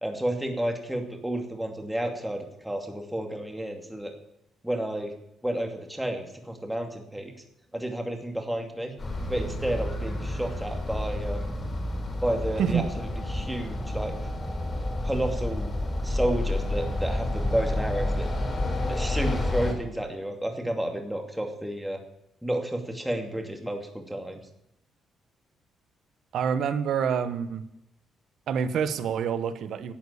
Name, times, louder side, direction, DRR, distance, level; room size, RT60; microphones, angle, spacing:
voice 1, 0.0-4.1 4.6-5.1 5.4-7.3 7.7-8.9 9.3-11.6 12.2-14.1 15.0-15.7 16.0-18.3 18.9-22.0 22.4-24.4, right 1 dB, 5° right, 3 dB, 2.5 m, -31 dB
sound 1, 9.0-19.7, left 1 dB, 30° left, 4.1 m, -30 dB
voice 2, 26.3-27.6 28.5-29.9, right 7 dB, 70° right, 12 dB, 1.1 m, -27 dB
12.0 x 8.5 x 8.6 m, 0.82 s
cardioid pair, 90°, 0 cm